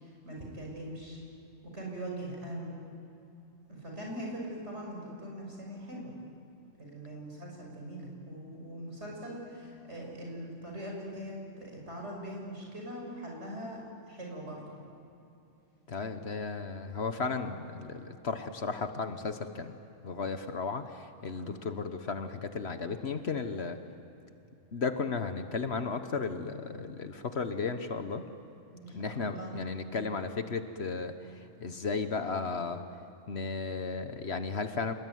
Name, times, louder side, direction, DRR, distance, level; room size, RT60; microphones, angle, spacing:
voice 1, 0.2-1.2 1.7-2.8 3.7-6.1 6.8-14.6 21.3-21.6 28.7-29.5, right 1 dB, 65° right, -1 dB, 6.5 m, -41 dB
voice 2, 15.9-19.8 20.0-23.8 24.7-28.2 28.9-32.8 33.3-34.9, left 4 dB, 60° left, 8 dB, 1.4 m, -34 dB
28.5 x 20.5 x 9.4 m, 2.8 s
omnidirectional pair, 1.3 m